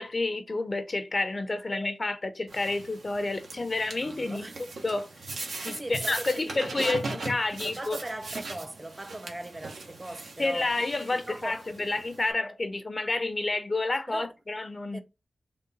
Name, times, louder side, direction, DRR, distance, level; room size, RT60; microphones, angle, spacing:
voice 1, 0.0-4.4 4.8-5.1 5.6-8.0 10.4-15.0, left 2 dB, 45° left, 0.6 m, -29 dB
sound 1, 2.5-12.3, right 3 dB, 85° right, 0.8 m, -40 dB
voice 2, 4.0-4.6 5.7-7.2 7.6-10.8 11.1-11.6 14.1-14.3 14.9-15.0, right 1 dB, 25° right, 0.5 m, -39 dB
3.7 x 2.2 x 3.9 m
cardioid pair, 60°, 0 cm